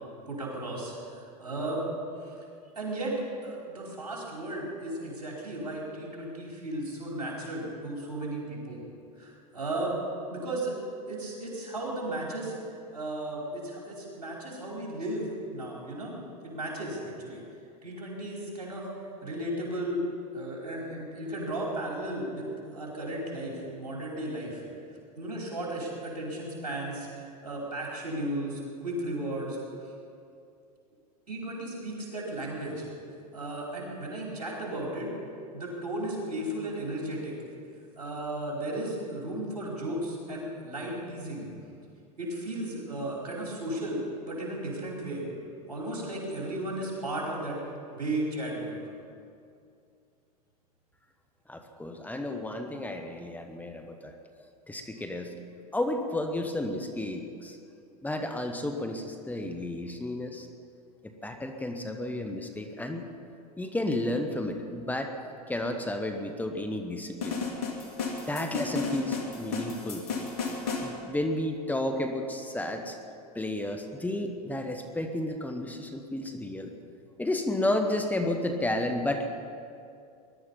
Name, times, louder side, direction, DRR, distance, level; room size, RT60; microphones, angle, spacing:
voice 1, 0.3-1.9 2.2-2.4 2.7-3.2 3.4-8.8 9.2-10.0 10.3-10.8 11.1-12.5 12.9-16.1 16.4-17.4 17.8-18.9 19.2-20.0 20.3-24.6 25.2-29.9 31.3-32.9 33.3-35.1 35.5-37.3 38.0-41.5 42.2-45.2 45.7-47.6 47.9-48.8, right 1 dB, 90° right, -3 dB, 4.8 m, -35 dB
voice 2, 51.5-55.3 55.7-57.6 58.0-60.5 61.2-63.1 63.6-65.1 65.5-67.4 68.3-70.0 70.8-73.0 73.3-76.7 77.2-79.3, left 1 dB, 10° left, 5 dB, 1.5 m, -32 dB
sound 1, 67.2-70.9, left 4 dB, 70° left, 2.8 m, -33 dB
20.0 x 12.0 x 5.7 m, 2.5 s
hypercardioid pair, 90°, 20 cm